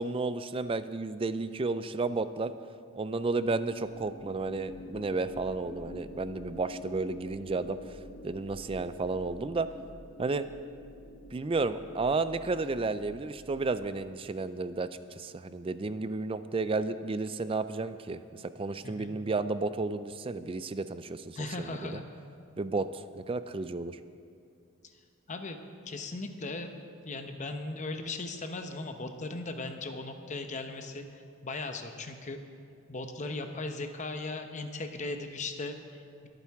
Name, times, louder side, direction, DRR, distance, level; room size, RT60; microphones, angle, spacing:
voice 1, 0.0-2.5 2.9-7.8 8.2-9.7 10.2-10.5 11.3-14.9 15.2-22.0 22.6-22.9 23.2-24.0, right 3 dB, 25° right, 13 dB, 0.4 m, -32 dB
sound 1, 3.8-14.3, equal, 60° left, 1.2 m, -47 dB
voice 2, 18.8-19.1 21.3-22.0 25.3-25.6 25.9-26.7 27.0-32.4 32.9-36.3, left 2 dB, 35° left, 6 dB, 0.8 m, -38 dB
27.0 x 9.0 x 3.6 m, 2.4 s
head